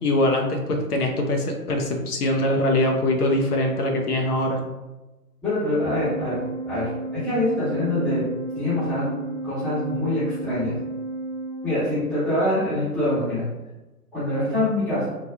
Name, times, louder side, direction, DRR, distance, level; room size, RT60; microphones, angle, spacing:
voice 1, 0.0-4.7, left 1 dB, 75° left, 2 dB, 0.7 m, -23 dB
voice 2, 5.4-6.4 6.7-8.2 8.6-9.2 9.4-10.8 11.6-13.4 14.1-15.1, left 1 dB, ahead, -14 dB, 0.8 m, -24 dB
Organ, 5.8-12.3, right 2 dB, 45° left, 0.9 m, -33 dB
3.2 x 2.3 x 2.3 m, 1.1 s
figure-of-eight pair, 135°, 46 cm